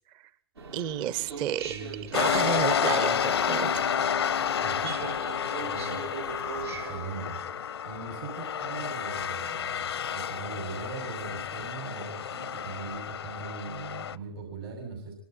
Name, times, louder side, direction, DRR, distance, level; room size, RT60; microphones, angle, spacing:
sound 1, 0.6-7.1, right 6 dB, 90° right, 4.1 m, -40 dB
voice 1, 0.7-1.6 2.1-3.9, right 10 dB, 35° right, 17 dB, 0.8 m, -31 dB
voice 2, 1.6-2.2 2.8-3.3 4.6-6.0 6.7-7.4 7.8-15.1, right 5 dB, 70° right, 2 dB, 7.2 m, -40 dB
sound 2, 2.1-14.2, left 8 dB, 85° left, 0.8 m, -30 dB
25.0 x 25.0 x 4.4 m, 0.62 s
hypercardioid pair, 125°, 13 cm